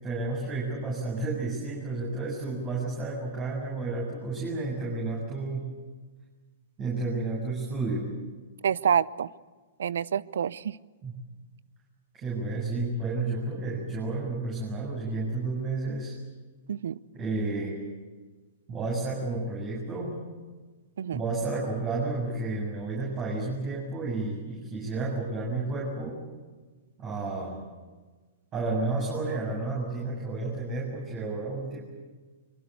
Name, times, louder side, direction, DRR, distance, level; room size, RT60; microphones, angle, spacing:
voice 1, 0.0-5.8 6.8-8.2 11.0-11.2 12.1-16.1 17.1-17.8 18.7-20.2 21.1-26.2 27.0-27.6 28.5-31.8, right 3 dB, 30° right, -2 dB, 7.5 m, -31 dB
voice 2, 8.6-9.3 9.8-10.8 16.7-17.0 21.0-21.2, right 8 dB, 70° right, 21 dB, 0.7 m, -27 dB
24.5 x 23.5 x 8.2 m, 1.4 s
hypercardioid pair, 115°, 0 cm